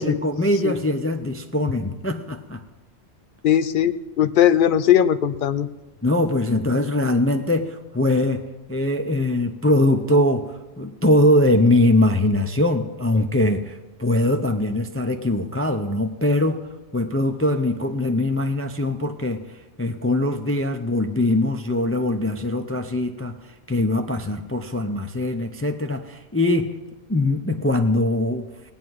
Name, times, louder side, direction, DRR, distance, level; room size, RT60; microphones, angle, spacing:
voice 1, 0.0-2.6 6.0-8.4 8.7-16.6 16.9-19.4 19.8-23.3 23.7-26.7 27.1-28.5, left 1 dB, 20° left, 6 dB, 0.4 m, -22 dB
voice 2, 3.4-5.7, left 10 dB, 55° left, 13 dB, 0.7 m, -19 dB
19.0 x 8.9 x 4.7 m, 1.1 s
omnidirectional pair, 1.2 m